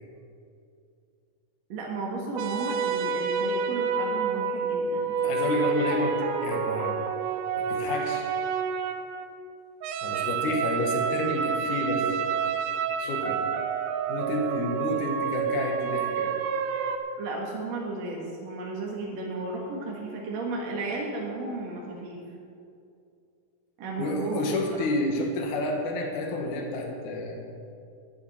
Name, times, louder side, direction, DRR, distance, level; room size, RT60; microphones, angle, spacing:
voice 1, 1.7-5.1 17.2-22.2 23.8-24.9, right 3 dB, 55° right, -2 dB, 2.8 m, -34 dB
sound 1, 2.4-9.3 9.8-17.0, right 6 dB, 75° right, 2.2 m, -29 dB
voice 2, 5.2-6.2 6.4-7.0 7.6-8.3 10.0-12.0 13.0-13.4 14.1-16.3 24.0-27.4, left 1 dB, 70° left, 1 dB, 2.9 m, -30 dB
11.5 x 10.5 x 7.2 m, 2.5 s
omnidirectional pair, 3.8 m